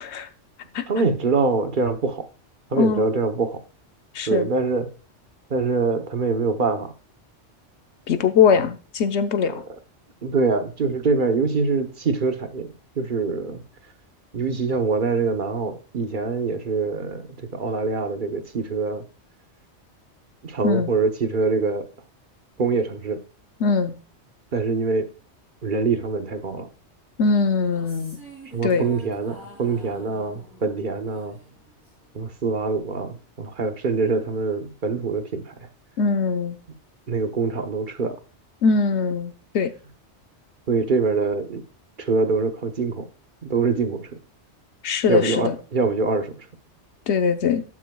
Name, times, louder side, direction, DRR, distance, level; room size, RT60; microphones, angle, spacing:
voice 1, 0.9-2.2 2.7-3.6 4.3-4.9 5.5-6.9 10.2-13.6 14.3-17.3 17.5-19.1 20.4-21.9 22.6-23.2 24.5-25.1 25.6-26.7 28.5-31.4 32.1-35.5 37.1-38.2 40.7-41.6 42.0-43.1 43.4-44.2 45.1-46.5, right 4 dB, 45° right, 1.1 m, -24 dB
voice 2, 2.8-3.1 4.1-4.5 8.1-9.6 20.6-20.9 23.6-23.9 27.2-28.2 28.6-28.8 36.0-36.6 38.6-39.7 44.8-45.5 47.1-47.6, left 5 dB, 70° left, 1.1 m, -21 dB
sound 1, 27.6-32.1, right 2 dB, 10° right, 4.5 m, -45 dB
12.0 x 6.1 x 2.3 m
omnidirectional pair, 1.2 m